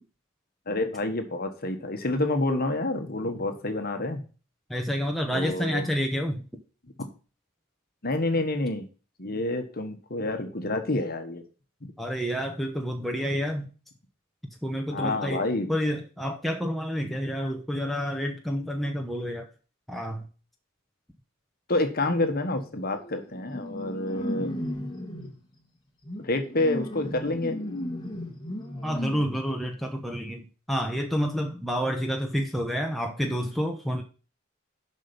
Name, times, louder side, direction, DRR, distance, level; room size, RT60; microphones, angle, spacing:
voice 1, 0.7-4.2 5.3-5.9 7.0-7.1 8.0-8.9 9.2-11.4 11.8-11.9 14.9-15.7 21.7-24.5 26.2-27.6, left 2 dB, 45° left, 1.3 m, -28 dB
voice 2, 4.7-6.5 12.0-13.7 14.6-15.4 15.7-19.5 19.9-20.3 28.8-34.0, equal, ahead, 0.9 m, -29 dB
sound 1, 22.4-22.6 22.9-25.4 26.0-29.2, left 1 dB, 20° left, 1.5 m, -35 dB
7.3 x 5.6 x 7.1 m
head